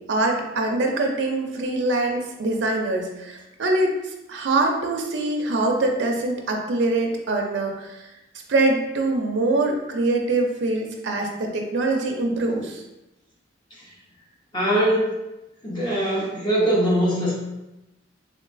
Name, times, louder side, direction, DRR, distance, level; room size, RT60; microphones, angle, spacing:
voice 1, 0.1-3.9 4.3-8.0 8.5-12.8, right 2 dB, 60° right, 1 dB, 0.4 m, -23 dB
voice 2, 14.5-15.2 15.6-17.4, right 1 dB, 25° left, -5 dB, 0.7 m, -22 dB
3.2 x 3.0 x 2.5 m, 0.96 s
head